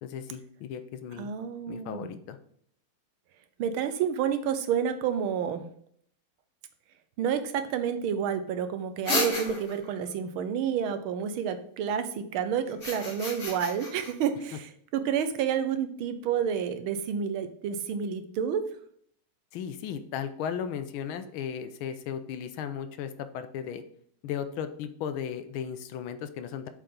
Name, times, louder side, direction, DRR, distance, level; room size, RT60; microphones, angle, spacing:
voice 1, 0.0-1.3 1.7-2.4 19.5-23.8 24.2-26.7, left 8 dB, 80° left, 9 dB, 1.5 m, -36 dB
voice 2, 1.2-2.1 3.6-5.6 7.2-18.7, right 8 dB, 80° right, 10 dB, 1.5 m, -29 dB
sound 1, 9.1-9.9 12.7-14.1, left 2 dB, 30° left, 1.7 m, -32 dB
7.7 x 4.9 x 3.7 m, 0.63 s
omnidirectional pair, 2.3 m